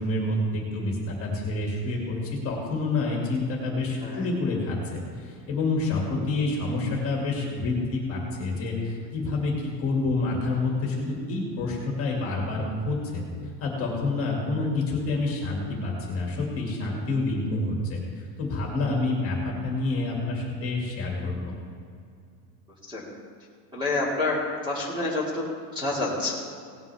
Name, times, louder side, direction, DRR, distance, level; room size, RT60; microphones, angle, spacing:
voice 1, 0.0-2.2 2.4-13.3 13.6-21.5, left 2 dB, 25° left, -2 dB, 2.3 m, -28 dB
voice 2, 23.7-24.4 24.6-25.4 25.8-26.4, left 2 dB, 10° right, -5 dB, 2.2 m, -27 dB
18.0 x 9.5 x 3.5 m, 2.3 s
supercardioid pair, 170°, 49 cm